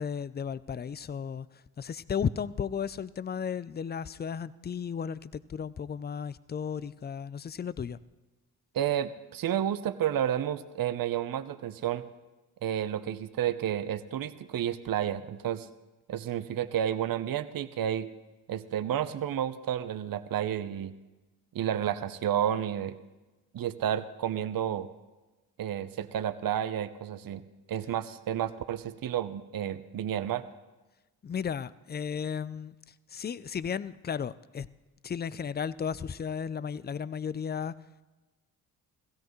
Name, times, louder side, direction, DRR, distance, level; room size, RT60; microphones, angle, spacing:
voice 1, 0.0-1.5 1.8-8.0 31.2-32.7 33.1-34.7 35.0-37.7, left 7 dB, 20° left, 18 dB, 0.4 m, -34 dB
voice 2, 8.7-12.0 12.6-15.7 16.1-18.1 18.5-20.9 21.5-23.0 23.5-24.9 25.6-27.4 27.7-30.4, right 10 dB, 45° right, 12 dB, 0.8 m, -31 dB
16.0 x 15.5 x 3.1 m, 1.1 s
hypercardioid pair, 45°, 48 cm